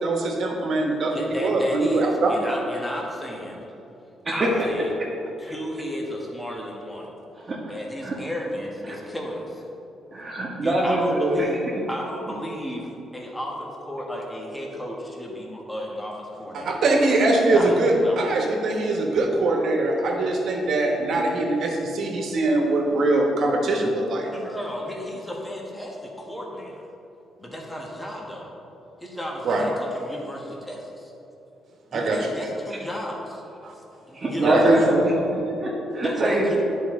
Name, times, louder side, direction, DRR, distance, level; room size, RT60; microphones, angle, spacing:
voice 1, 0.0-2.3 16.5-24.3 29.4-29.7 31.9-32.2 33.6-33.7 34.4-34.7, right 2 dB, 65° right, 1 dB, 1.3 m, -22 dB
voice 2, 1.1-3.6 4.3-4.9 5.4-7.1 7.7-9.6 10.6-11.6 11.9-16.8 17.5-18.3 24.3-26.8 27.4-28.5 29.0-31.1 31.9-33.4 34.1-34.7 36.0-36.6, equal, 10° left, -2 dB, 1.3 m, -33 dB
voice 3, 7.3-8.1 8.8-9.0 10.1-11.6 32.7-32.8 34.1-36.6, right 1 dB, 30° right, -7 dB, 1.3 m, -23 dB
10.5 x 4.6 x 3.7 m, 2.9 s
cardioid pair, 90°, 0 cm